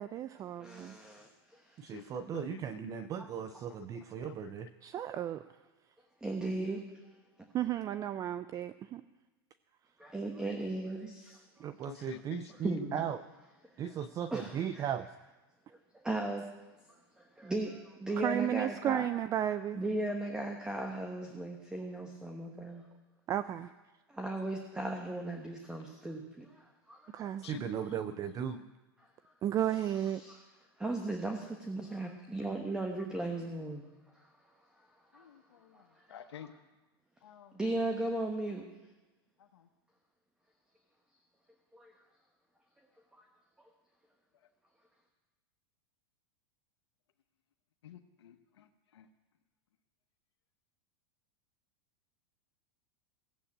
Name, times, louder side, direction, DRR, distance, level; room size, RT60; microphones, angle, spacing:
voice 1, 0.0-0.9 1.8-5.4 7.5-9.0 11.6-13.2 13.8-15.0 18.2-19.8 23.3-23.7 27.1-28.5 29.4-30.2, right 11 dB, 25° right, 13 dB, 0.4 m, -35 dB
voice 2, 0.5-1.9 3.2-3.3 5.0-5.1 6.2-6.8 10.0-11.7 12.6-13.0 13.8-13.9 14.3-14.9 15.9-16.5 16.9-19.1 19.7-22.9 24.1-27.3 29.9-30.4 30.8-33.8 34.1-34.3 35.1-35.3 35.7-35.8 37.5-38.7 41.7-41.9 43.2-43.3, right 2 dB, 5° right, 3 dB, 1.3 m, -37 dB
voice 3, 1.8-4.7 11.6-13.2 13.8-15.1 23.4-23.5 27.1-28.7 35.1-36.5 37.2-37.6 38.1-38.2 39.4-39.7 44.3-44.5 47.8-49.1, left 9 dB, 90° left, 6 dB, 0.9 m, -49 dB
15.5 x 8.0 x 8.6 m, 1.2 s
supercardioid pair, 130°, 13 cm